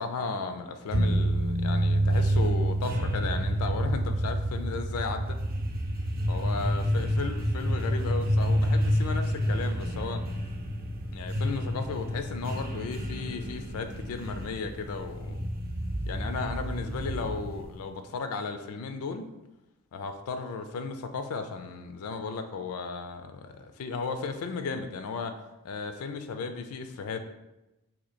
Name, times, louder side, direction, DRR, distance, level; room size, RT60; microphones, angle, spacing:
voice 1, 0.0-5.4 6.3-10.2 11.1-15.4 16.1-19.3 19.9-25.3 25.6-27.2, left 4 dB, 70° left, 8 dB, 0.4 m, -35 dB
sound 1, 0.9-17.7, equal, 40° right, 0.6 m, -28 dB
2.8 x 2.7 x 4.1 m, 0.98 s
head